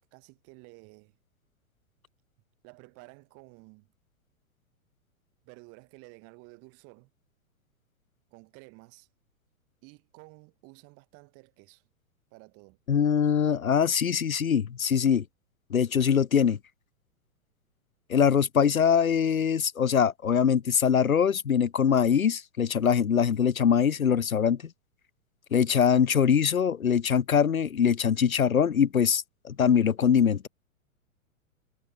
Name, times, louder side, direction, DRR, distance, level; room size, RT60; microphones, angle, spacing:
voice 1, 0.1-1.2 2.6-3.9 5.4-7.1 8.3-9.1 9.8-11.9 12.3-12.8, right 30 dB, 35° right, 6.5 m, -52 dB
voice 2, 12.9-15.2 15.7-16.6 18.1-24.6 25.5-30.5, left 7 dB, 75° left, 0.8 m, -23 dB
figure-of-eight pair, 105°, 41 cm